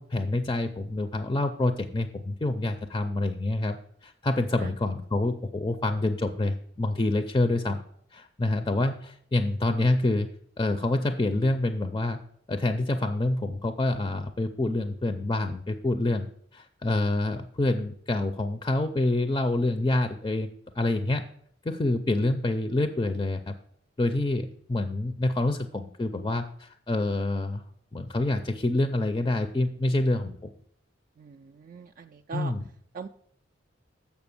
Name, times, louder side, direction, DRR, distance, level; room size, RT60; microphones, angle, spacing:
voice 1, 0.0-7.8 8.1-10.3 10.6-12.2 12.5-16.3 16.5-20.5 20.8-21.2 21.6-23.6 24.0-27.6 27.9-30.4 32.3-32.6, left 2 dB, 20° left, 8 dB, 0.4 m, -27 dB
voice 2, 31.2-32.5 32.9-33.1, right 6 dB, 45° right, 6 dB, 0.3 m, -40 dB
7.1 x 5.9 x 7.0 m, 0.65 s
head